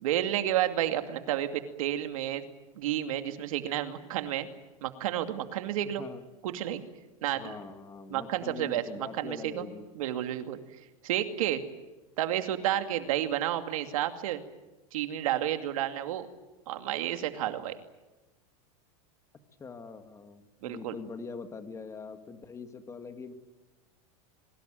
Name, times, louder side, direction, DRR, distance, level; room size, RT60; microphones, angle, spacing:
voice 1, 0.0-2.5 2.8-4.5 4.8-6.0 6.4-6.8 7.2-7.5 8.1-9.7 10.0-10.6 11.0-11.6 12.2-14.4 14.9-16.3 16.7-17.8 20.6-20.9, right 12 dB, 80° right, 7 dB, 2.5 m, -31 dB
voice 2, 7.3-9.9 19.6-23.3, left 4 dB, 15° left, 8 dB, 2.0 m, -43 dB
23.0 x 22.0 x 9.2 m, 1.1 s
supercardioid pair, 145°, 17 cm